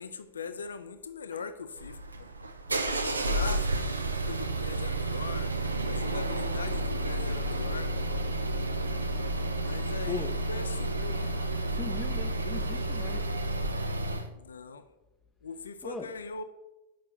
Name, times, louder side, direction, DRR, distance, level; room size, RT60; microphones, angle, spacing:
voice 1, 0.0-2.3 2.8-3.7 4.2-5.5 5.9-7.9 9.6-11.3 14.3-14.8 15.4-16.4, left 5 dB, 70° left, 11 dB, 0.5 m, -41 dB
sound 1, 1.8-14.3, right 1 dB, 80° right, 0.6 m, -31 dB
voice 2, 10.1-10.4 11.7-13.3 15.8-16.2, left 3 dB, 10° left, 3 dB, 0.6 m, -40 dB
6.4 x 5.4 x 6.8 m, 1.1 s
figure-of-eight pair, 90°, 0 cm